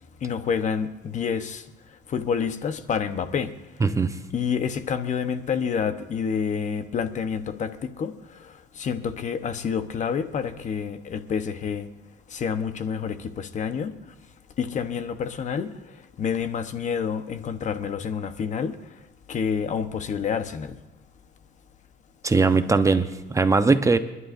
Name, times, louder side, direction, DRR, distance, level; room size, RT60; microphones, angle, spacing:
voice 1, 0.2-1.6 2.1-3.5 4.3-8.1 8.4-11.9 12.3-14.0 14.6-15.7 16.2-18.8 19.3-20.7, left 6 dB, 45° left, 10 dB, 1.0 m, -28 dB
voice 2, 3.8-4.1 22.2-24.0, right 4 dB, 20° right, 10 dB, 0.8 m, -20 dB
29.5 x 11.0 x 2.6 m, 1.1 s
cardioid pair, 110°, 17 cm